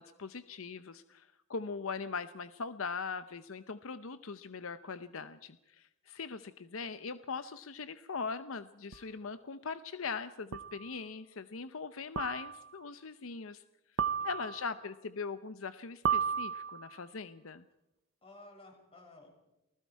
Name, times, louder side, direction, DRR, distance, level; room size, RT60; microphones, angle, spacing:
voice 1, 0.0-13.6 14.2-17.6, left 5 dB, 70° left, 12 dB, 0.8 m, -41 dB
sound 1, 8.9-9.0 10.5-10.9 12.2-12.7 14.0-14.8 16.1-17.0, right 7 dB, 65° right, 0.7 m, -34 dB
voice 2, 14.0-14.5 18.2-19.3, left 2 dB, 25° left, 1 dB, 6.7 m, -55 dB
29.0 x 20.0 x 4.7 m, 0.92 s
head